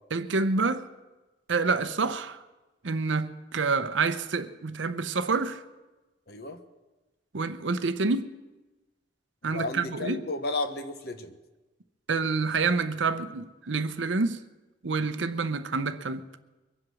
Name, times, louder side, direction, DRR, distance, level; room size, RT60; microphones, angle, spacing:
voice 1, 0.1-0.9 1.5-2.4 2.8-5.6 7.3-8.3 9.4-10.2 12.1-14.4 14.8-16.2, right 4 dB, 85° right, 0.7 m, -27 dB
voice 2, 6.3-6.6 9.4-11.3, left 2 dB, 55° left, 1.0 m, -33 dB
23.0 x 7.7 x 6.2 m
head